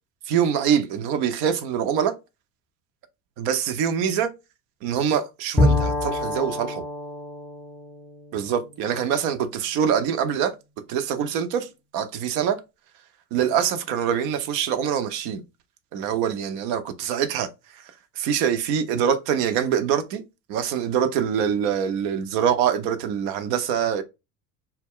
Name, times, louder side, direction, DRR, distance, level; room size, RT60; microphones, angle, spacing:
voice 1, 0.3-2.1 3.4-4.3 4.8-6.8 8.3-10.6 10.9-12.6 13.3-15.4 15.9-20.2 20.5-24.0, right 8 dB, 55° right, 0.6 m, -24 dB
Bowed string instrument, 5.6-9.3, left 2 dB, ahead, 0.5 m, -26 dB
2.2 x 2.0 x 3.6 m
hypercardioid pair, 70°, 45 cm